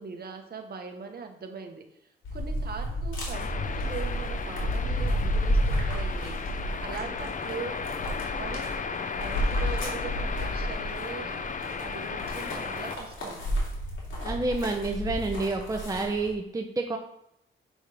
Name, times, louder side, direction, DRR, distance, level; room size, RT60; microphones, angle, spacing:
voice 1, 0.0-6.4 6.8-7.8 8.4-11.4 11.8-13.4, right 5 dB, 55° right, 4 dB, 1.2 m, -41 dB
sound 1, 2.2-16.3, equal, 80° left, 2.7 m, -31 dB
sound 2, 3.3-13.0, left 5 dB, 40° left, 0.5 m, -35 dB
voice 2, 14.2-17.0, right 3 dB, 15° right, 3 dB, 0.7 m, -29 dB
7.4 x 6.2 x 3.5 m, 0.77 s
cardioid pair, 100°, 20 cm